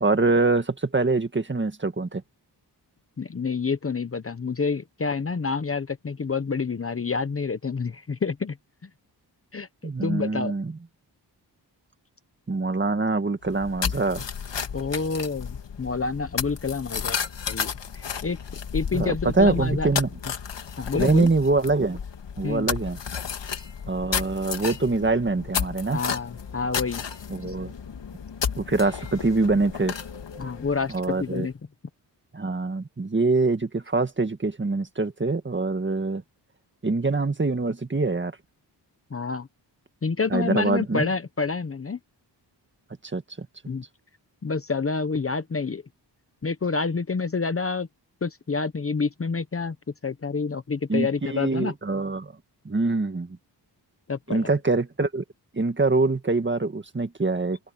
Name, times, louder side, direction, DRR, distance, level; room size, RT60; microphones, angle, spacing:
voice 1, 0.0-2.2 9.8-10.8 12.5-14.3 18.9-20.1 20.9-22.0 22.4-23.0 23.9-26.0 27.3-27.7 28.6-29.9 30.9-31.5 32.3-36.2 36.8-38.3 40.3-41.1 43.1-43.5 50.9-52.3 52.7-53.4 54.3-55.2 55.5-57.6, right 3 dB, 25° right, 1.8 m, -24 dB
voice 2, 3.2-8.6 9.5-9.7 10.0-10.5 14.7-17.2 17.5-18.4 18.7-19.9 20.8-21.3 22.4-22.7 25.9-27.0 30.4-31.5 39.1-39.5 40.0-42.0 43.7-43.8 44.4-45.8 46.4-47.9 48.2-49.8 50.0-51.7 54.1-54.5, left 4 dB, 35° left, 0.9 m, -28 dB
sound 1, 13.4-31.4, left 7 dB, 80° left, 2.3 m, -33 dB
open air
wide cardioid pair, 140°, 42 cm